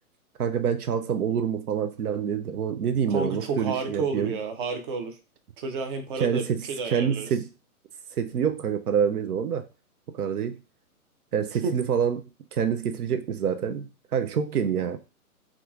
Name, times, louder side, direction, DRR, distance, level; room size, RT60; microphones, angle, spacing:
voice 1, 0.4-4.3 6.2-7.5 8.2-9.7 10.1-10.6 11.3-15.0, right 7 dB, 80° right, 0.6 m, -27 dB
voice 2, 3.1-5.1 5.6-7.3 11.6-11.8, right 4 dB, 35° right, 0.7 m, -31 dB
2.8 x 2.4 x 3.5 m
hypercardioid pair, 135°, 44 cm